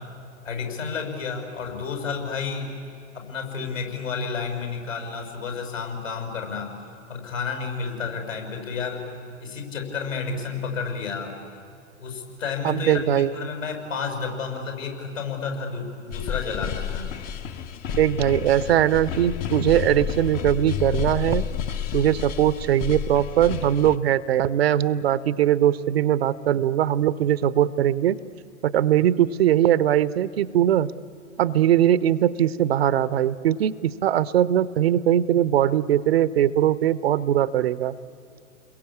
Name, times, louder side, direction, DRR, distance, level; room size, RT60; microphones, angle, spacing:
voice 1, 0.4-2.7 3.1-6.8 7.1-9.0 9.4-11.4 12.0-17.1, left 5 dB, 70° left, 3 dB, 6.8 m, -31 dB
voice 2, 12.6-13.3 17.9-21.5 21.9-28.2 28.6-30.9 31.4-38.0, right 11 dB, 50° right, 17 dB, 0.8 m, -21 dB
sound 1, 16.1-24.0, left 8 dB, 25° left, 0.8 m, -30 dB
30.0 x 22.0 x 8.6 m, 2.6 s
figure-of-eight pair, 110°, 40 cm